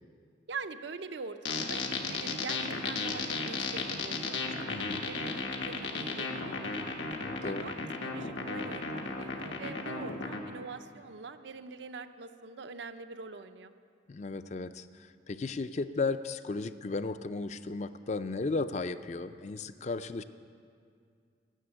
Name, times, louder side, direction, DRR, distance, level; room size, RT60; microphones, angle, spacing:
voice 1, 0.5-4.6 5.1-6.9 7.4-7.8 8.0-13.7, right 4 dB, 75° right, 9 dB, 0.6 m, -44 dB
sound 1, 1.4-10.4, left 3 dB, 85° left, 1.3 m, -34 dB
voice 2, 4.7-5.0 7.2-7.7 14.1-14.9 15.3-20.2, left 3 dB, 40° left, 12 dB, 0.4 m, -35 dB
13.0 x 7.7 x 8.9 m, 2.3 s
head